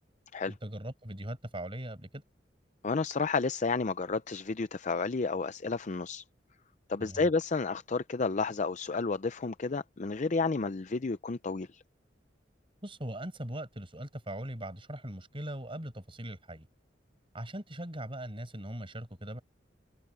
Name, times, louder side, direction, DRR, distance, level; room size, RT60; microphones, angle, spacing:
voice 1, 0.5-2.2 7.0-7.3 12.8-16.7 17.3-19.4, right 1 dB, 30° right, 5.7 m, -40 dB
voice 2, 2.8-6.2 6.9-11.8, left 4 dB, 45° left, 0.5 m, -31 dB
head